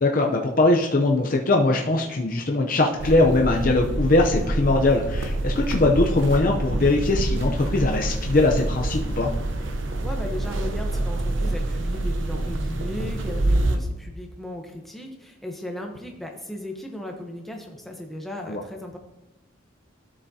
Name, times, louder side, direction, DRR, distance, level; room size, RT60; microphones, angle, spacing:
voice 1, 0.0-9.3 18.5-18.6, left 2 dB, 45° left, 1 dB, 0.6 m, -21 dB
sound 1, 3.0-13.8, right 1 dB, 70° right, 0.8 m, -26 dB
voice 2, 10.0-19.0, left 1 dB, ahead, 1 dB, 0.8 m, -36 dB
12.0 x 7.1 x 2.8 m, 0.98 s
head